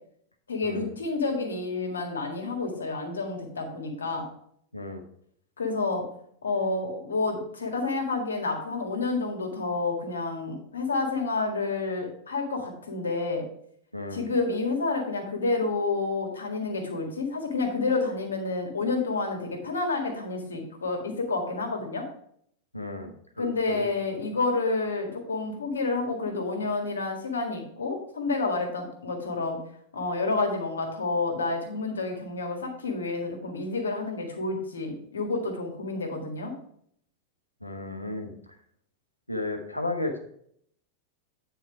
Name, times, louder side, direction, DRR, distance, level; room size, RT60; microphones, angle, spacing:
voice 1, 0.5-4.3 5.6-6.0 6.4-13.4 14.1-22.1 23.4-29.6 29.9-36.5, left 3 dB, 70° left, 3 dB, 1.7 m, -29 dB
voice 2, 13.9-14.3 22.7-23.1 23.4-23.9 37.6-38.3 39.3-40.2, left 2 dB, 85° left, 4 dB, 1.1 m, -33 dB
9.4 x 4.4 x 4.8 m, 0.67 s
figure-of-eight pair, 90°, 0 cm